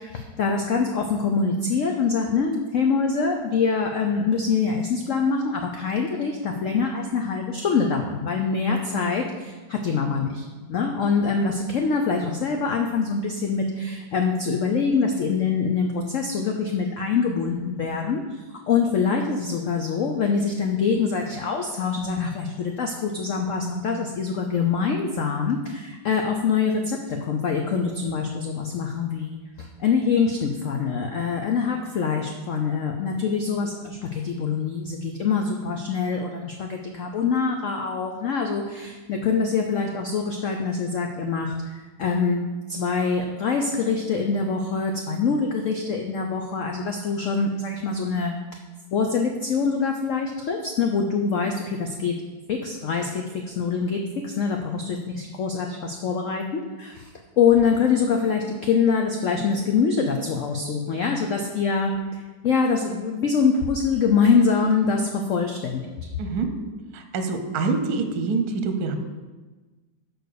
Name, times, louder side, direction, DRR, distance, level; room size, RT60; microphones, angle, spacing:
voice 1, 0.0-42.4 42.7-48.3 48.9-52.1 52.5-57.1 57.4-65.8, left 5 dB, 85° left, 2 dB, 0.6 m, -24 dB
voice 2, 66.9-68.9, right 4 dB, 60° right, 6 dB, 1.1 m, -25 dB
6.3 x 4.8 x 6.4 m, 1.3 s
omnidirectional pair, 2.1 m